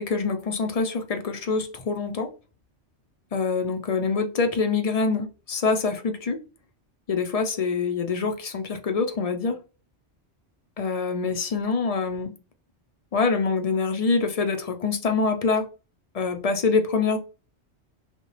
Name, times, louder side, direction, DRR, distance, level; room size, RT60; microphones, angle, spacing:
voice 1, 0.0-2.3 3.3-6.4 7.1-9.6 10.8-12.3 13.1-15.7 16.1-17.2, left 4 dB, 45° left, 0.5 m, -25 dB
5.1 x 2.2 x 3.2 m
omnidirectional pair, 1.2 m